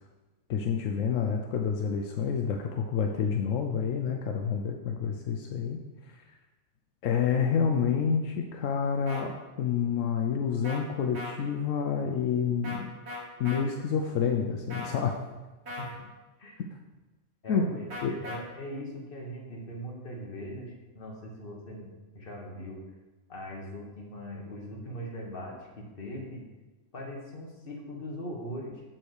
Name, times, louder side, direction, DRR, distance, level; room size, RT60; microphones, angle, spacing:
voice 1, 0.5-5.8 6.1-6.2 7.0-12.9 13.4-15.2 17.5-17.6 18.0-18.1, left 7 dB, 80° left, 3 dB, 1.0 m, -28 dB
sound 1, 9.1-9.2 10.6-10.8 11.1-11.3 12.6-12.8 13.1-13.6 14.7-15.0 15.7-15.9 17.9-18.4, left 2 dB, 60° right, 1.7 m, -38 dB
voice 2, 17.4-21.9 22.2-22.8 23.3-26.4 26.9-28.8, equal, 45° left, -1 dB, 1.7 m, -40 dB
7.6 x 4.2 x 6.5 m, 1.2 s
omnidirectional pair, 1.3 m